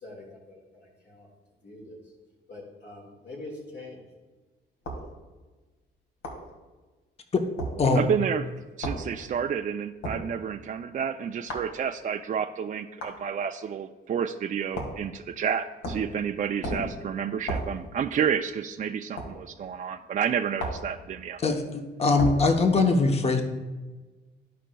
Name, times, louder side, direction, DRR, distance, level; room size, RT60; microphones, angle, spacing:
voice 1, 0.0-1.3 1.6-2.0 2.5-4.0, left 2 dB, 60° left, -2 dB, 1.9 m, -44 dB
sound 1, 4.8-5.1 6.2-6.5 7.6-7.8 8.8-9.0 10.0-10.2 11.5-11.7 13.0-13.2 14.7-15.0 15.8-16.1 16.6-16.9 17.5-17.7 19.2-19.3 20.6-20.9 22.2-22.4, right 1 dB, 85° left, 1.8 m, -32 dB
voice 2, 7.9-8.5 8.8-21.4, right 7 dB, 40° right, 5 dB, 0.4 m, -30 dB
voice 3, 21.4-23.4, left 3 dB, 30° left, 4 dB, 0.9 m, -22 dB
14.0 x 5.0 x 2.3 m, 1.2 s
cardioid pair, 90°, 20 cm